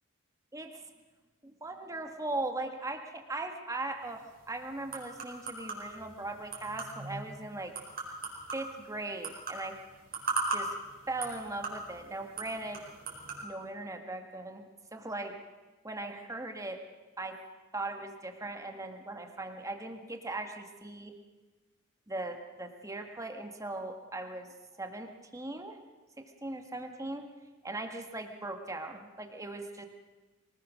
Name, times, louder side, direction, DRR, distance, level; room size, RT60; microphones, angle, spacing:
voice 1, 1.4-7.7 8.5-9.8 10.5-10.7 11.1-12.8 13.4-14.6 14.9-15.3 15.8-16.8 17.2-17.4 17.7-21.1 22.1-24.5 24.8-25.8 26.4-27.3 27.6-29.9, right 2 dB, 15° right, 4 dB, 1.8 m, -39 dB
sound 1, 4.0-13.4, right 3 dB, 45° right, 4.8 m, -40 dB
24.0 x 19.5 x 6.4 m, 1.2 s
head